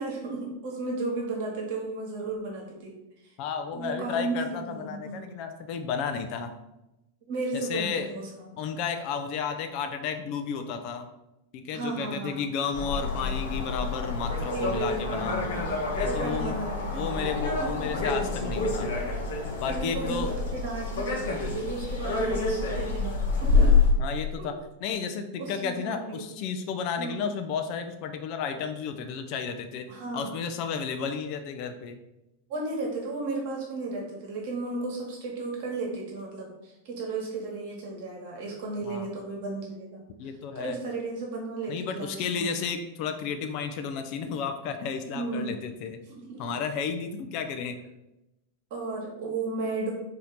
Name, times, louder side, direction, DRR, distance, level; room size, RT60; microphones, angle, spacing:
voice 1, 0.0-2.9 3.7-5.2 7.3-8.5 11.7-12.5 14.5-17.3 17.6-17.9 19.6-23.8 24.4-24.5 25.4-26.2 27.0-27.3 29.9-30.3 32.5-40.0 40.5-42.5 45.1-45.6 46.1-46.4 48.7-49.9, right 3 dB, 50° right, -1 dB, 1.3 m, -34 dB
voice 2, 3.4-6.5 7.5-8.1 8.6-11.1 11.5-15.5 16.0-16.6 16.9-18.9 19.6-20.3 24.0-24.5 24.8-29.9 30.1-32.0 38.9-39.1 40.2-40.8 41.7-46.0 46.4-47.8, left 6 dB, 45° left, 6 dB, 0.4 m, -32 dB
sound 1, 12.7-23.9, left 4 dB, 60° left, 1.0 m, -27 dB
4.2 x 2.8 x 3.9 m, 0.93 s
figure-of-eight pair, 90°, 0 cm